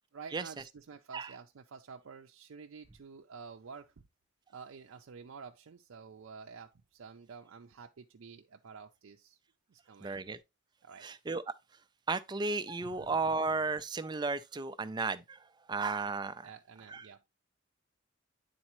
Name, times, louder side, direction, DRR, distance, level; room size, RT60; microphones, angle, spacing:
voice 1, 0.1-3.9 4.5-9.4 9.7-10.2 10.8-11.1 12.8-13.1 16.4-17.2, right 5 dB, 80° right, 0.5 m, -50 dB
voice 2, 10.0-10.4 11.0-11.4 12.1-16.5 16.9-17.0, right 3 dB, 20° right, 0.4 m, -34 dB
9.7 x 4.0 x 3.0 m
head